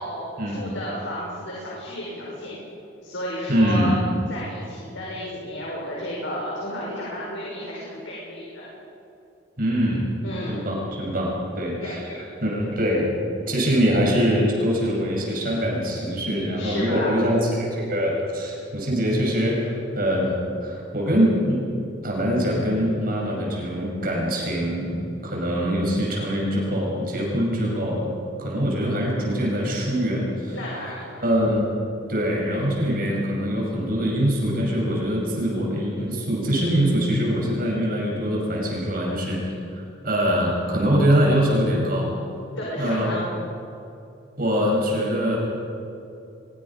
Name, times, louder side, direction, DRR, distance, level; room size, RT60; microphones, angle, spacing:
voice 1, 0.0-2.6 3.0-3.9 4.3-8.7 10.2-10.7 11.8-11.9 16.6-17.2 30.5-31.2 42.6-43.3, equal, 90° left, -6 dB, 6.0 m, -32 dB
voice 2, 3.5-3.9 9.6-10.0 10.5-12.0 12.4-13.1 13.5-21.6 22.0-25.0 25.2-28.1 28.4-30.6 31.2-31.6 32.1-39.4 39.7-42.1 42.8-43.1 44.4-45.4, equal, 50° right, -2 dB, 5.8 m, -23 dB
23.5 x 21.5 x 5.6 m, 2.7 s
head